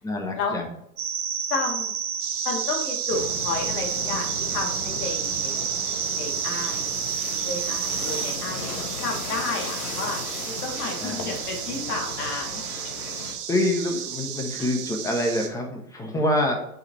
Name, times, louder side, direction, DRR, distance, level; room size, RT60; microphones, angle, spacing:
voice 1, 0.0-0.7 11.0-11.3 13.5-16.6, left 1 dB, 5° left, 2 dB, 1.3 m, -26 dB
sound 1, 1.0-8.4, right 7 dB, 15° right, 0.6 m, -30 dB
voice 2, 1.5-1.9 2.4-5.6 6.2-6.9 7.4-8.7 9.0-10.2 10.4-12.6, left 3 dB, 80° left, 0 dB, 3.1 m, -31 dB
sound 2, 2.2-15.5, right 9 dB, 35° right, 1.3 m, -34 dB
sound 3, 3.1-13.3, left 4 dB, 65° left, 2.2 m, -36 dB
8.6 x 6.7 x 3.2 m, 0.78 s
hypercardioid pair, 140°, 45 cm